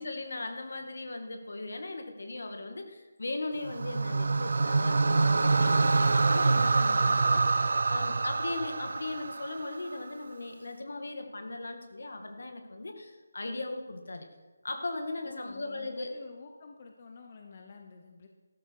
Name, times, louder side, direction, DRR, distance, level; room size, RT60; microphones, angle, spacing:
voice 1, 0.0-14.3 14.6-16.1, left 2 dB, 70° left, 5 dB, 2.2 m, -38 dB
sound 1, 3.6-10.0, right 3 dB, 65° right, 0.4 m, -26 dB
voice 2, 15.2-18.3, left 4 dB, 35° left, 4 dB, 1.0 m, -49 dB
13.0 x 12.5 x 4.8 m, 1.2 s
figure-of-eight pair, 170°, 0 cm